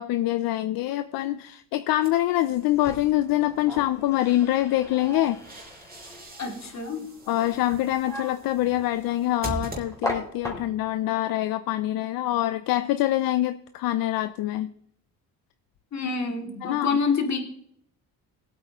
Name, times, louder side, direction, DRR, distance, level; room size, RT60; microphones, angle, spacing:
voice 1, 0.0-5.4 7.3-14.7 16.6-17.0, left 14 dB, 75° left, 11 dB, 0.6 m, -25 dB
sound 1, 2.0-3.1 5.0-10.4, right 2 dB, 25° right, 3.1 m, -41 dB
sound 2, 2.5-11.0, left 1 dB, 10° left, 2.9 m, -39 dB
voice 2, 6.4-7.1 10.5-10.6 15.9-17.4, left 5 dB, 50° left, 3 dB, 2.6 m, -27 dB
19.5 x 8.5 x 3.0 m, 0.72 s
cardioid pair, 85°, 35 cm